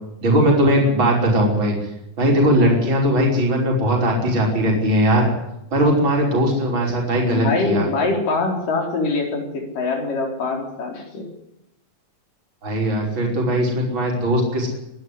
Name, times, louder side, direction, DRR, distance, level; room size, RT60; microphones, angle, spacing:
voice 1, 0.2-1.7 2.2-5.3 5.7-7.9 12.6-14.7, equal, 35° right, -1 dB, 6.0 m, -19 dB
voice 2, 7.3-11.3, left 3 dB, 70° left, 2 dB, 5.7 m, -23 dB
23.5 x 12.0 x 9.9 m, 0.86 s
omnidirectional pair, 3.9 m